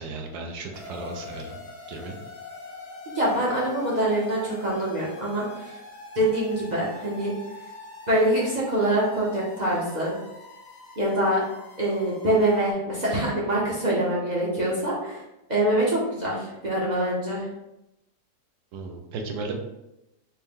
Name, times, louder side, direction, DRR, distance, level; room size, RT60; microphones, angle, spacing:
voice 1, 0.0-1.6 1.9-2.2 18.7-19.5, right 3 dB, 75° right, 2 dB, 1.2 m, -35 dB
sound 1, 0.7-12.7, left 3 dB, 50° left, 0.8 m, -43 dB
voice 2, 3.1-5.8 6.1-7.3 8.1-10.2 11.0-11.4 11.8-15.2 15.5-17.5, right 1 dB, 35° right, -6 dB, 0.7 m, -24 dB
4.4 x 2.1 x 3.6 m, 0.91 s
omnidirectional pair, 1.8 m